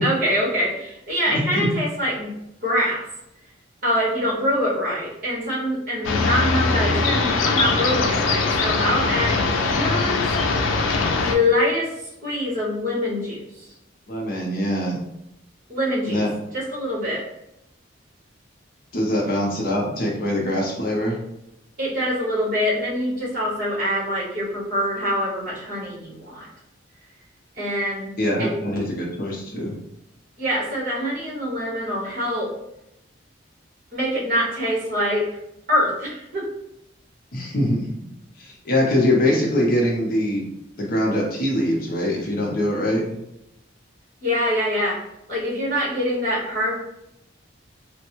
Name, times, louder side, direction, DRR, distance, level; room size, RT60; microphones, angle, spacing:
voice 1, 0.0-2.3 2.6-3.0 3.8-10.2 11.1-11.9 12.2-13.7 15.7-16.2 16.5-17.2 21.8-26.5 27.6-28.1 28.4-28.5 30.4-32.5 33.9-35.2 35.7-36.5 44.2-45.0 45.3-46.8, equal, 45° right, -6 dB, 1.4 m, -24 dB
voice 2, 1.3-1.7 14.1-15.0 16.1-16.3 18.9-21.2 28.2-29.8 37.3-37.9 38.4-40.4 40.8-43.0, left 1 dB, 45° left, -2 dB, 0.7 m, -23 dB
sound 1, 6.0-11.3, left 3 dB, 90° left, 0.4 m, -21 dB
3.4 x 2.2 x 2.9 m, 0.84 s
head